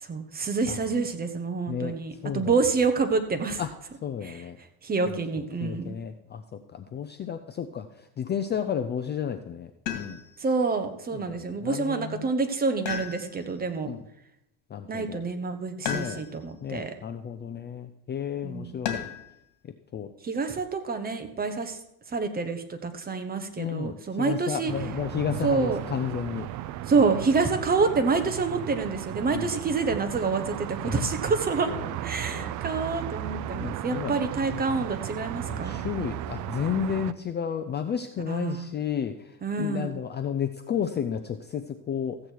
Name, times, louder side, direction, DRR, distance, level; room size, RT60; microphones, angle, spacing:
voice 1, 0.1-3.6 4.2-4.4 4.8-6.0 10.4-13.9 14.9-16.9 18.4-18.8 20.2-21.8 22.1-24.7 25.4-25.8 26.9-31.7 32.0-35.8 38.3-38.7 39.4-40.0, right 4 dB, 20° right, 7 dB, 1.1 m, -27 dB
voice 2, 1.7-2.6 3.6-3.7 4.0-4.6 5.1-5.2 5.6-10.2 11.1-12.3 13.9-14.0 14.7-15.2 15.8-16.2 16.6-19.1 19.6-20.1 23.6-26.5 29.3-29.5 30.8-31.0 31.7-31.9 32.3-32.6 33.5-34.2 34.5-34.6 35.5-42.2, left 8 dB, 25° left, 8 dB, 0.5 m, -32 dB
sound 1, 9.9-10.5 12.8-13.6 15.8-16.6 18.8-19.4 21.1-21.7, left 9 dB, 75° left, 2.0 m, -35 dB
sound 2, 24.7-37.1, right 13 dB, 45° right, 0.5 m, -35 dB
14.5 x 8.5 x 4.6 m, 0.83 s
cardioid pair, 135°, 44 cm